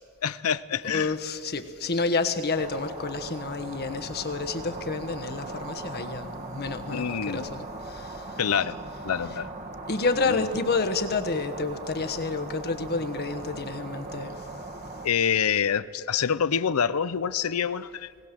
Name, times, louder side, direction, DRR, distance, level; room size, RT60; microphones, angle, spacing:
voice 1, 0.2-1.1 6.9-7.5 8.4-8.8 9.0-9.5 10.3-10.4 15.0-18.1, left 7 dB, 80° left, 16 dB, 0.6 m, -26 dB
voice 2, 0.8-8.6 9.2-9.4 9.9-14.5, left 3 dB, 50° left, 8 dB, 1.3 m, -29 dB
sound 1, 2.5-15.1, right 2 dB, 40° right, 1.6 m, -39 dB
20.0 x 18.0 x 7.6 m, 2.3 s
head